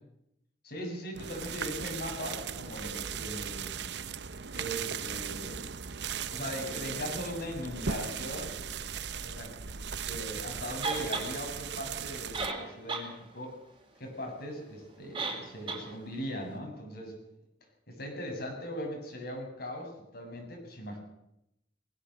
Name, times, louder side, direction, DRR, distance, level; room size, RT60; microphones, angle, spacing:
voice 1, 0.6-3.8 4.5-5.6 6.3-8.5 9.2-9.5 10.0-13.5 14.0-17.1 17.9-21.0, equal, 60° left, 2 dB, 7.3 m, -39 dB
sound 1, 1.1-12.5, right 7 dB, 70° right, 0.9 m, -38 dB
sound 2, 10.8-11.3 12.1-12.2 12.3-13.1 13.4-13.5 15.1-15.4 15.7-15.8, right 3 dB, 30° right, 4.3 m, -33 dB
21.0 x 16.5 x 8.0 m, 0.82 s
head